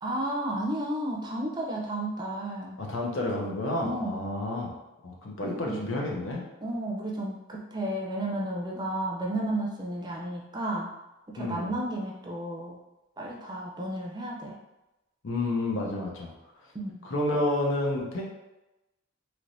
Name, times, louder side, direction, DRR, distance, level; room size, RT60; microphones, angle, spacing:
voice 1, 0.0-2.8 3.8-4.4 5.4-5.8 6.6-10.9 11.3-12.8 13.2-14.6 16.7-17.1, right 1 dB, 20° right, -2 dB, 0.5 m, -32 dB
voice 2, 2.8-4.7 5.0-6.4 11.4-11.7 15.2-16.3 17.0-18.2, left 2 dB, 75° left, -1 dB, 0.8 m, -30 dB
3.3 x 3.0 x 2.6 m, 0.98 s
head